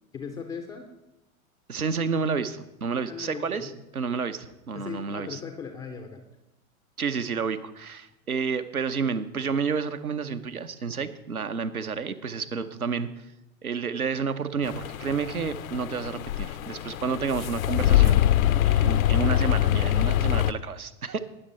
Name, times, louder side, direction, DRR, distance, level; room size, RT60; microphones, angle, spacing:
voice 1, 0.1-0.9 3.1-3.7 4.7-6.2, left 6 dB, 10° left, 4 dB, 0.3 m, -38 dB
voice 2, 1.7-5.4 7.0-13.1 13.6-21.2, right 5 dB, 85° right, 9 dB, 0.8 m, -30 dB
sound 1, 14.6-20.5, left 12 dB, 70° left, 0.6 m, -24 dB
18.5 x 6.6 x 4.2 m, 0.91 s
figure-of-eight pair, 90°, 42 cm